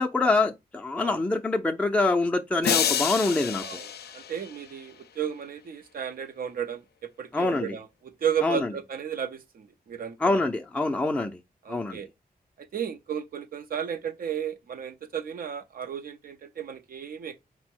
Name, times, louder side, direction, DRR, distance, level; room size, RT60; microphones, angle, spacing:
voice 1, 0.0-3.8 7.3-7.8 8.4-8.7 10.2-11.4 11.7-12.0, left 2 dB, 10° left, 0.4 m, -25 dB
sound 1, 2.6-4.9, left 8 dB, 85° left, 0.4 m, -29 dB
voice 2, 4.1-6.8 7.2-10.5 11.6-12.1 12.6-17.4, right 8 dB, 65° right, 0.5 m, -34 dB
4.4 x 2.0 x 4.3 m
wide cardioid pair, 110°, 16 cm